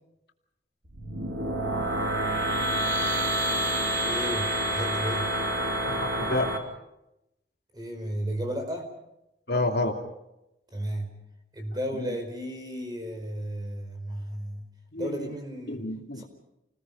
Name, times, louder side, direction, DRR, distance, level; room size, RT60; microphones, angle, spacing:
sound 1, 0.9-6.6, right 1 dB, 85° right, 3.1 m, -28 dB
voice 1, 4.0-5.3 7.7-8.9 10.7-11.2 11.5-14.7 15.0-15.9 16.2-16.3, equal, 20° right, 4 dB, 4.9 m, -34 dB
voice 2, 5.8-6.5 9.5-10.0 12.0-12.1 14.9-15.3 15.7-16.2, left 2 dB, 60° left, 2 dB, 2.8 m, -29 dB
29.5 x 20.5 x 5.5 m, 0.88 s
head